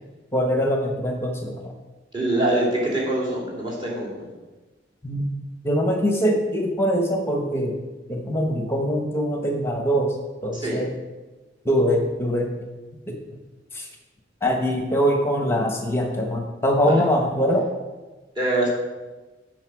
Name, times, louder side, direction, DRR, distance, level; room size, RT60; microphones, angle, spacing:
voice 1, 0.3-1.7 5.0-5.3 5.6-7.8 8.1-10.1 10.4-10.9 11.6-12.5 13.1-13.2 13.7-13.9 14.4-17.7, equal, 15° left, 2 dB, 0.9 m, -23 dB
voice 2, 2.1-4.3 10.5-10.8 16.8-17.0 18.3-18.7, right 1 dB, 25° right, -5 dB, 2.9 m, -24 dB
9.5 x 5.1 x 6.0 m, 1.2 s
head